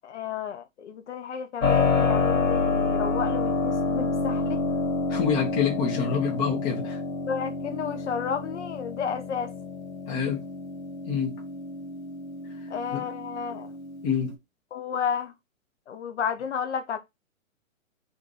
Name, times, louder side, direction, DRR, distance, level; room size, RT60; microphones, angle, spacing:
voice 1, 0.0-4.6 7.3-9.5 12.7-13.7 14.7-15.3 15.9-17.0, left 7 dB, 60° left, 0.7 m, -32 dB
Keyboard (musical), 1.6-14.3, left 4 dB, 85° left, 1.1 m, -28 dB
voice 2, 5.1-7.0 10.1-10.4 11.0-11.4 12.9-13.0 14.0-14.3, left 6 dB, 10° left, 0.4 m, -27 dB
2.6 x 2.4 x 3.9 m
figure-of-eight pair, 120°, 41 cm